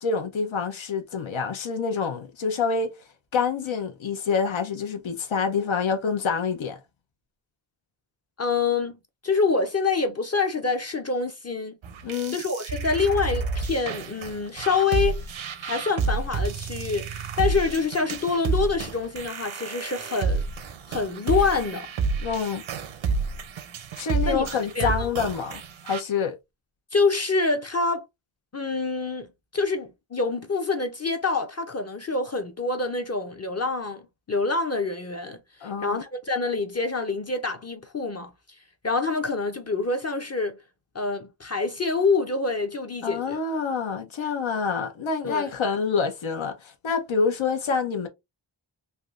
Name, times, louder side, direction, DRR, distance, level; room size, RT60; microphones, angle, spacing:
voice 1, 0.0-2.9 3.3-6.8 12.0-12.4 22.2-22.6 24.0-26.4 35.6-36.0 43.0-48.1, left 5 dB, 85° left, 0.8 m, -27 dB
voice 2, 8.4-11.7 12.3-15.2 15.6-20.4 20.9-21.9 24.3-24.5 24.8-25.1 26.9-28.0 28.5-38.3 38.8-40.6 40.9-43.4 45.2-45.5, left 4 dB, 35° left, 0.5 m, -26 dB
sound 1, 11.8-26.0, right 4 dB, 80° right, 0.7 m, -30 dB
3.5 x 2.6 x 2.4 m
wide cardioid pair, 95°, 46 cm